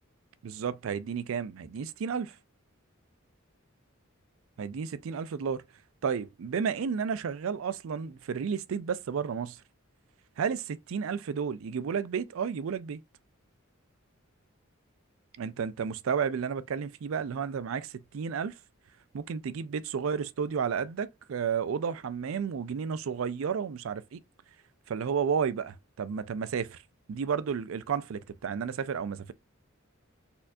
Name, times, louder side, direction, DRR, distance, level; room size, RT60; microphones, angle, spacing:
voice 1, 0.4-2.3 4.6-5.6 6.0-9.6 10.4-13.0 15.4-18.6 19.1-24.2 24.9-26.8 27.1-29.3, right 6 dB, 70° right, 0.4 m, -32 dB
4.3 x 2.7 x 2.3 m
head